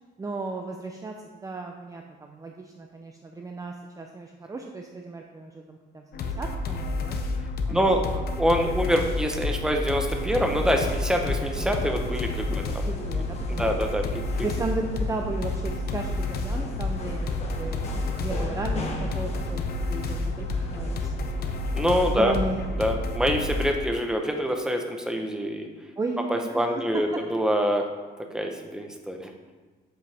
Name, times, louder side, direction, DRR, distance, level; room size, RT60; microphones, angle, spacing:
voice 1, 0.2-1.1 1.4-7.2 7.7-7.9 8.1-8.3 12.5-13.8 14.4-21.3 22.2-22.6 26.0-26.6 26.9-27.2, right 3 dB, 20° right, 3 dB, 0.7 m, -35 dB
sound 1, 6.1-23.7, left 2 dB, 60° left, 0.9 m, -30 dB
voice 2, 7.7-12.9 13.5-14.2 21.7-22.4 22.8-25.7 26.3-27.9 28.3-29.3, equal, 5° right, 3 dB, 1.0 m, -25 dB
sound 2, 10.2-22.8, left 2 dB, 40° left, 1.5 m, -39 dB
8.3 x 7.9 x 3.5 m, 1.4 s
cardioid pair, 115°, 18 cm